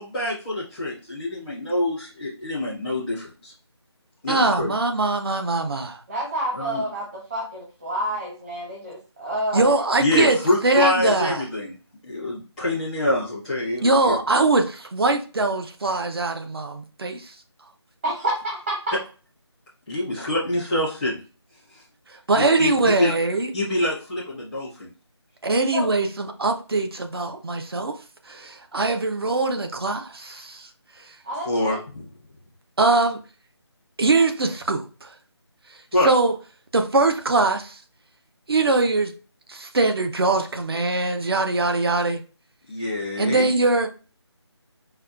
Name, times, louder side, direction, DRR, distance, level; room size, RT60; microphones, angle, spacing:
voice 1, 0.0-3.5 4.2-4.7 6.6-6.8 10.0-11.7 12.0-14.2 19.9-21.2 22.3-23.1 23.5-24.9 31.5-32.1 35.9-36.1 42.7-43.6, left 1 dB, ahead, -10 dB, 0.5 m, -25 dB
voice 2, 4.3-6.0 9.5-10.4 10.6-11.4 13.8-17.3 22.1-23.5 25.4-27.9 28.3-30.7 32.8-33.2 34.0-35.1 36.0-36.3 36.7-37.8 38.5-39.1 39.5-42.2 43.2-43.9, right 3 dB, 60° right, 6 dB, 0.7 m, -22 dB
voice 3, 6.1-9.7 18.0-19.0 25.7-25.9 31.2-31.8, right 1 dB, 25° right, -4 dB, 0.9 m, -28 dB
5.4 x 2.3 x 2.4 m, 0.35 s
figure-of-eight pair, 165°, 15 cm